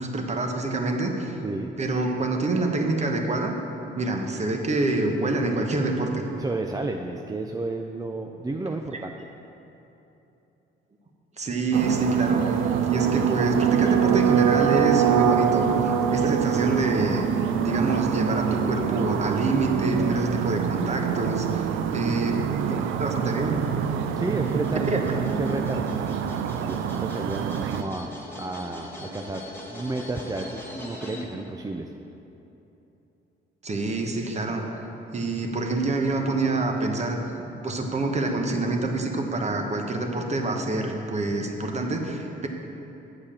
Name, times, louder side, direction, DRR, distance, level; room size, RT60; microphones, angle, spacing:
voice 1, 0.0-1.4 1.8-3.5 4.0-6.2 11.4-12.6 12.9-17.2 17.6-23.6 24.9-25.0 33.6-34.7 35.1-37.2 37.6-42.5, right 2 dB, 35° right, 3 dB, 1.1 m, -26 dB
voice 2, 6.4-9.1 24.2-24.8 25.1-26.0 26.6-28.1 28.4-31.9, right 2 dB, 20° right, 3 dB, 0.4 m, -31 dB
sound 1, 11.7-27.8, right 8 dB, 80° right, 0.4 m, -25 dB
sound 2, 22.2-31.2, left 1 dB, 10° left, 1.4 m, -42 dB
8.1 x 5.1 x 7.2 m, 3.0 s
cardioid pair, 90°, 20 cm